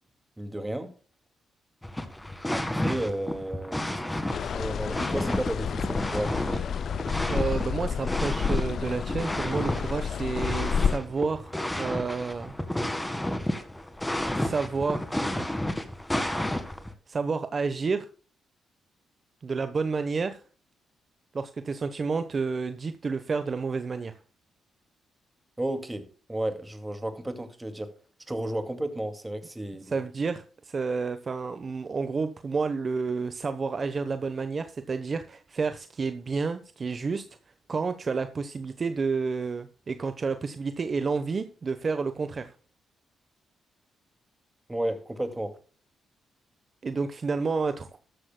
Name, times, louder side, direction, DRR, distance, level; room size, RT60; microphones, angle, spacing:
voice 1, 0.4-0.9 2.5-4.0 4.4-6.4 25.6-27.9 28.3-29.8 44.7-45.6, right 1 dB, 15° right, 2.2 m, -33 dB
sound 1, 1.8-16.9, left 1 dB, 10° left, 1.7 m, -32 dB
sound 2, 4.3-11.0, left 7 dB, 60° left, 0.4 m, -30 dB
voice 2, 7.3-12.5 14.3-15.5 17.1-18.1 19.4-20.4 21.3-24.2 29.8-37.3 37.7-42.5 46.8-48.0, right 4 dB, 40° right, 1.0 m, -30 dB
13.0 x 12.5 x 2.2 m
cardioid pair, 90°, 0 cm